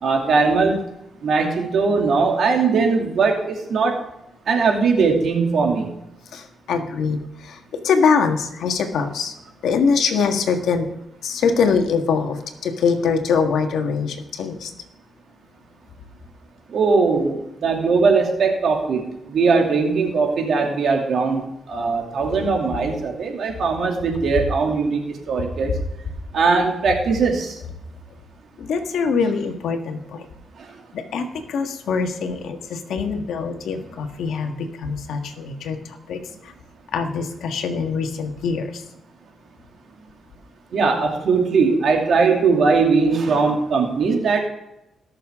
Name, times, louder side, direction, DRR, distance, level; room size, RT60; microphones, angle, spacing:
voice 1, 0.0-0.8 1.2-4.0 4.5-5.9 16.7-25.7 26.3-27.6 40.7-44.4, right 4 dB, 65° right, 2 dB, 2.6 m, -20 dB
voice 2, 6.3-9.3 9.6-10.9 11.2-14.7 28.6-30.2 30.9-35.8 36.1-36.2 36.9-38.8, left 5 dB, 85° left, 5 dB, 1.6 m, -23 dB
20.0 x 6.9 x 3.7 m, 0.88 s
cardioid pair, 105°, 0 cm